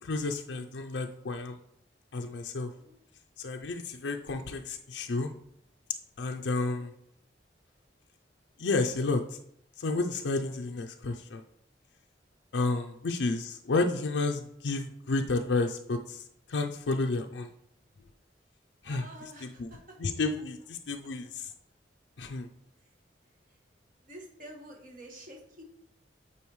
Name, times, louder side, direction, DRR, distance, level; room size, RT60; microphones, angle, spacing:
voice 1, 0.0-1.6 2.1-2.7 3.4-5.3 6.2-6.9 8.6-9.2 9.8-11.4 12.5-16.2 16.5-17.5 18.8-19.7 20.0-21.5 22.2-22.5, left 3 dB, 85° left, 4 dB, 0.5 m, -31 dB
voice 2, 2.4-3.0 6.8-6.9 18.8-20.0 22.8-22.9 23.5-23.6 24.0-25.6, right 1 dB, 50° right, 0 dB, 1.5 m, -49 dB
8.6 x 4.3 x 3.1 m, 0.71 s
head